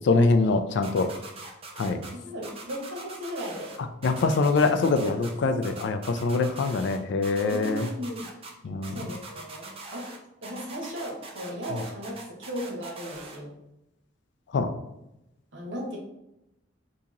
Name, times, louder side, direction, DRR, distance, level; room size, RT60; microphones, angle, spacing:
voice 1, 0.1-1.1 1.8-2.0 4.0-7.8 8.6-9.0 14.5-14.7, left 3 dB, 65° left, 8 dB, 0.3 m, -24 dB
sound 1, 0.8-2.1 2.4-3.8 4.0-5.3 5.6-7.0 7.2-8.5 8.8-10.2 10.4-13.4, right 3 dB, 30° right, 0.5 m, -42 dB
voice 2, 2.1-3.7 7.5-8.3 8.9-10.1 10.4-13.5 15.5-16.0, equal, 75° right, -1 dB, 1.0 m, -36 dB
2.9 x 2.7 x 3.7 m, 0.88 s
head